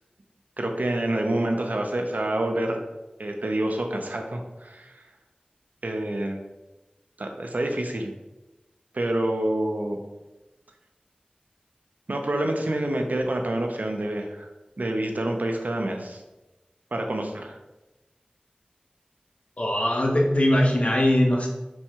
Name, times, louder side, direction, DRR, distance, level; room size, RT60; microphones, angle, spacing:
voice 1, 0.6-2.8 3.2-5.0 5.8-6.4 7.2-8.1 8.9-10.0 12.1-14.5 14.8-16.2 16.9-17.6, right 1 dB, 70° right, 3 dB, 0.6 m, -27 dB
voice 2, 19.6-21.5, left 1 dB, 50° left, -1 dB, 0.8 m, -21 dB
4.3 x 2.3 x 4.4 m, 1.0 s
wide cardioid pair, 45°, 3 cm